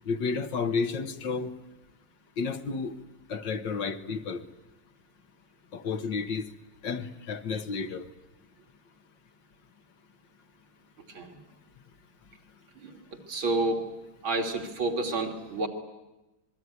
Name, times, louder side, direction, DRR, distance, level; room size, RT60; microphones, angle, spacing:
voice 1, 0.1-1.5 2.4-3.0 3.3-4.4 5.7-6.5 6.8-8.1, left 5 dB, 65° left, 9 dB, 1.9 m, -31 dB
voice 2, 11.1-11.4 12.8-13.9 14.2-15.7, right 2 dB, 80° right, 2 dB, 3.7 m, -30 dB
26.0 x 21.5 x 9.6 m, 1.0 s
omnidirectional pair, 2.2 m